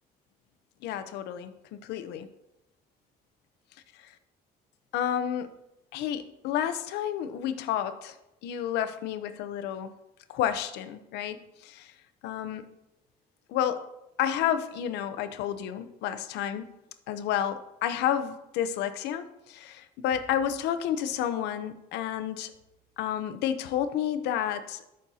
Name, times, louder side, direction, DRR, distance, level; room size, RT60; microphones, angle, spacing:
voice 1, 0.8-2.3 4.9-5.5 5.9-8.1 8.4-9.9 10.3-11.9 12.2-12.7 13.5-13.8 14.2-16.7 17.1-22.5 23.0-24.8, left 10 dB, 90° left, 11 dB, 0.7 m, -30 dB
13.0 x 6.4 x 2.8 m, 0.90 s
cardioid pair, 110°, 17 cm